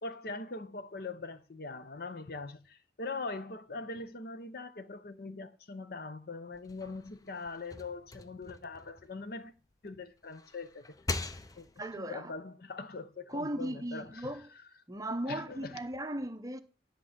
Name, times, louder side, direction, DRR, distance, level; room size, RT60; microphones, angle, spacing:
voice 1, 0.0-9.5 9.8-10.9 11.6-11.7 12.0-14.3 15.3-15.8, left 3 dB, 55° left, 0.7 m, -42 dB
sound 1, 6.5-9.7 10.2-12.0, left 2 dB, 20° left, 0.5 m, -42 dB
voice 2, 11.8-12.3 13.3-14.5 14.9-16.6, right 1 dB, 20° right, 0.6 m, -37 dB
11.0 x 3.8 x 7.3 m
head